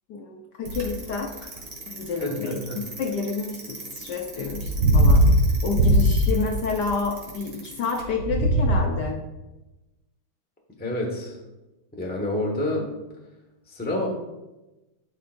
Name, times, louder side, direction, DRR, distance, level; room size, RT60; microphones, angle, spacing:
voice 1, 0.1-1.5 1.9-5.3 5.6-9.2, left 4 dB, 65° left, 2 dB, 1.2 m, -29 dB
Bicycle, 0.7-8.7, right 1 dB, 60° right, 2.2 m, -21 dB
voice 2, 2.2-2.8 10.8-11.4 12.0-12.9 13.7-14.1, left 1 dB, 5° left, -1 dB, 1.0 m, -28 dB
12.0 x 5.2 x 2.5 m, 1.0 s
omnidirectional pair, 2.2 m